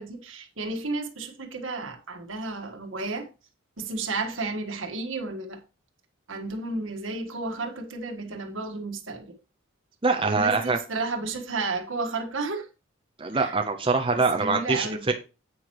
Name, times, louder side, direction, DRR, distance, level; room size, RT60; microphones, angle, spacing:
voice 1, 0.0-3.3 3.8-5.6 6.3-9.3 10.2-12.7 13.3-13.5 14.3-15.1, right 3 dB, 70° right, 1.6 m, -32 dB
voice 2, 10.0-10.8 13.2-15.1, right 4 dB, 25° right, 0.7 m, -24 dB
9.0 x 8.4 x 3.1 m
head